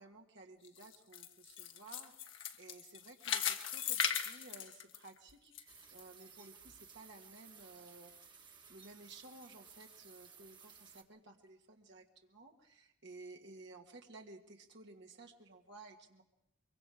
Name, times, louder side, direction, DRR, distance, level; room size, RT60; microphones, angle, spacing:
voice 1, 0.0-16.2, right 3 dB, 60° right, 2 dB, 1.8 m, -56 dB
sound 1, 0.6-5.6 6.0-6.1 6.7-6.8, left 8 dB, 65° left, 1.5 m, -38 dB
sound 2, 5.7-11.0, right 6 dB, 25° right, 1.6 m, -58 dB
24.0 x 23.0 x 5.0 m, 0.81 s
head